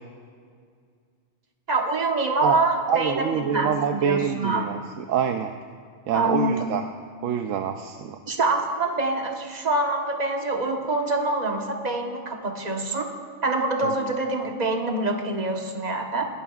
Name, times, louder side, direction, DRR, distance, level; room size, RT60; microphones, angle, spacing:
voice 1, 1.7-4.6 6.1-6.5 8.3-13.1 13.4-16.3, right 2 dB, 35° right, 3 dB, 1.2 m, -25 dB
voice 2, 2.9-5.5 6.1-6.8 7.2-8.2 13.8-14.1, right 8 dB, 80° right, 6 dB, 1.0 m, -26 dB
24.0 x 12.5 x 2.4 m, 2.1 s
omnidirectional pair, 1.3 m